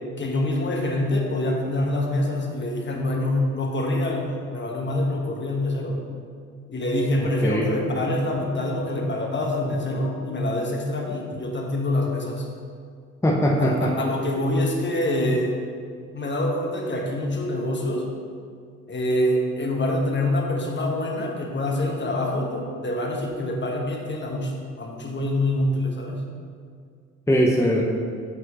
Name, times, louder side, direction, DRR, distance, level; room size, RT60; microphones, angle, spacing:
voice 1, 0.2-6.0 6.7-12.5 13.6-15.5 16.1-18.1 18.9-26.2, left 1 dB, 30° left, 0 dB, 1.3 m, -25 dB
voice 2, 7.2-7.7 13.2-13.9 27.3-27.8, equal, 10° left, -3 dB, 0.9 m, -21 dB
8.2 x 5.6 x 3.0 m, 2.1 s
hypercardioid pair, 45°, 36 cm